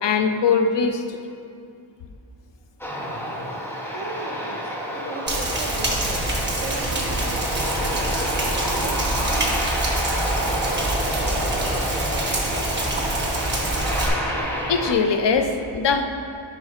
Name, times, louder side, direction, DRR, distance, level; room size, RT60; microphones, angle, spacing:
voice 1, 0.0-1.2 14.7-16.0, left 5 dB, 60° left, 7 dB, 0.5 m, -21 dB
Aircraft, 2.8-14.9, equal, 5° left, 0.7 m, -29 dB
voice 2, 3.9-6.2 6.6-7.5 7.9-9.7, right 3 dB, 55° right, 3 dB, 0.7 m, -37 dB
Rain, 5.3-14.1, right 1 dB, 20° right, 1.1 m, -25 dB
9.5 x 5.4 x 2.4 m, 2.4 s
wide cardioid pair, 85°, 49 cm